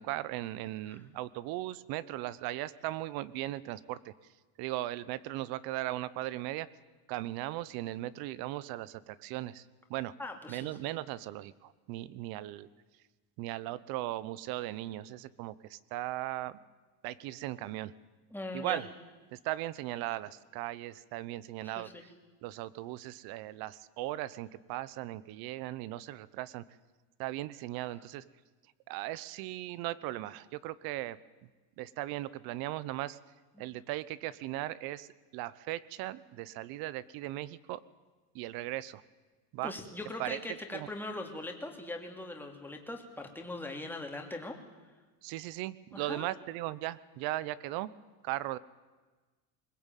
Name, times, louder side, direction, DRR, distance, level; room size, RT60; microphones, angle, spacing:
voice 1, 0.0-4.1 4.6-6.7 7.1-9.6 9.9-10.1 10.5-12.7 13.4-16.6 17.0-17.9 18.5-18.9 19.3-21.9 22.4-26.6 27.2-28.2 28.9-31.2 31.8-33.2 33.6-35.1 35.3-37.8 38.3-39.0 39.5-39.7 40.2-40.4 40.7-40.9 45.2-47.9 48.2-48.6, right 16 dB, 65° right, 19 dB, 1.0 m, -38 dB
voice 2, 10.2-10.7 18.3-18.8 21.6-22.0 39.6-44.6 45.9-46.3, left 2 dB, 5° left, 3 dB, 2.7 m, -41 dB
21.0 x 20.5 x 9.1 m, 1.3 s
cardioid pair, 150°, 38 cm